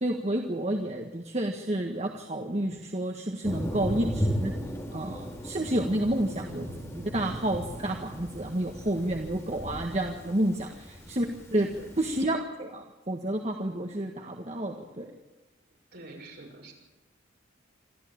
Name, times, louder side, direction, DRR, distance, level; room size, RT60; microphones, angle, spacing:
voice 1, 0.0-4.5 4.9-6.7 6.9-11.3 11.5-11.7 12.0-15.1, right 1 dB, 35° right, 2 dB, 1.6 m, -30 dB
Thunder, 3.4-12.2, equal, 15° left, 4.3 m, -36 dB
voice 2, 15.9-16.7, right 2 dB, 60° right, 1 dB, 7.0 m, -46 dB
26.5 x 14.0 x 8.8 m, 1.1 s
head